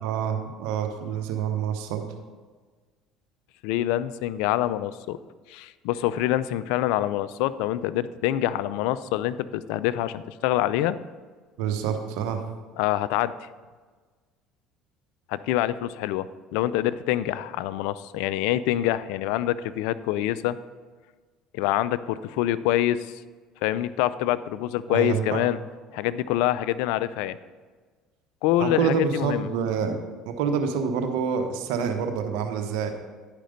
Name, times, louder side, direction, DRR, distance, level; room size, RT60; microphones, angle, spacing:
voice 1, 0.0-2.0 11.6-12.4 24.9-25.4 28.6-30.0 30.3-32.9, right 6 dB, 75° right, 6 dB, 1.0 m, -27 dB
voice 2, 3.6-5.2 5.5-11.0 12.8-13.3 15.3-20.6 21.5-23.2 23.6-25.6 25.9-27.4 28.4-29.5, left 13 dB, 75° left, 15 dB, 0.3 m, -26 dB
10.5 x 5.1 x 5.1 m, 1.4 s
hypercardioid pair, 75°, 0 cm